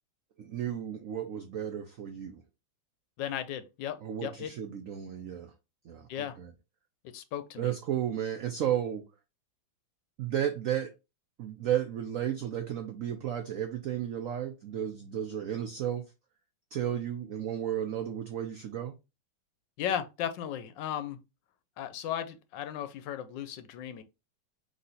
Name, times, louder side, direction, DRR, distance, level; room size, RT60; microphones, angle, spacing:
voice 1, 0.4-2.4 4.0-5.5 5.9-6.5 7.6-9.0 10.2-10.9 11.4-16.0 16.7-18.9, right 10 dB, 85° right, 0.7 m, -33 dB
voice 2, 3.2-4.5 6.1-6.3 7.1-7.7 19.8-21.2 21.8-24.0, left 10 dB, 75° left, 1.2 m, -36 dB
4.1 x 3.2 x 3.9 m
omnidirectional pair, 2.1 m